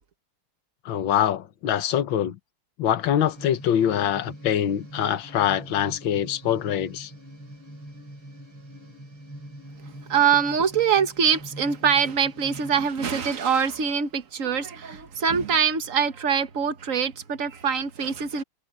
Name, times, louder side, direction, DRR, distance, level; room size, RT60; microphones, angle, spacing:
voice 1, 0.9-2.4 2.8-7.1, left 10 dB, 70° left, 1.8 m, -24 dB
sound 1, 3.2-12.9, right 1 dB, 80° right, 8.5 m, -43 dB
voice 2, 10.1-18.4, right 7 dB, 45° right, 1.4 m, -24 dB
omnidirectional pair, 2.2 m